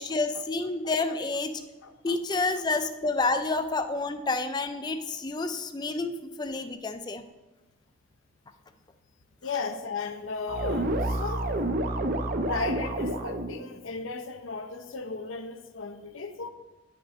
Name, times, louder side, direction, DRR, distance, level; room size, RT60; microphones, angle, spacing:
voice 1, 0.0-1.5 2.0-7.2, left 3 dB, 20° left, 9 dB, 0.4 m, -29 dB
voice 2, 1.8-2.4 9.4-11.5 12.4-16.5, left 4 dB, 90° left, 8 dB, 0.6 m, -35 dB
sound 1, 10.5-13.6, right 1 dB, 45° right, 0.5 m, -29 dB
9.9 x 6.0 x 2.8 m, 1.2 s
head